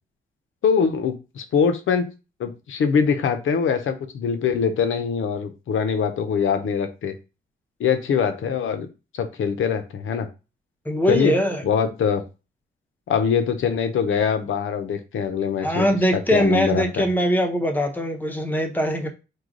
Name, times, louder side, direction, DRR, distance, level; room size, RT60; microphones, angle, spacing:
voice 1, 0.6-2.1 2.4-7.1 7.8-8.9 9.2-10.3 11.1-11.4 11.6-12.2 13.1-15.9 16.1-17.1, left 6 dB, 75° left, 0.7 m, -23 dB
voice 2, 10.9-11.6 15.6-19.1, equal, 10° left, 0.6 m, -22 dB
4.7 x 2.2 x 3.8 m
wide cardioid pair, 155°, 21 cm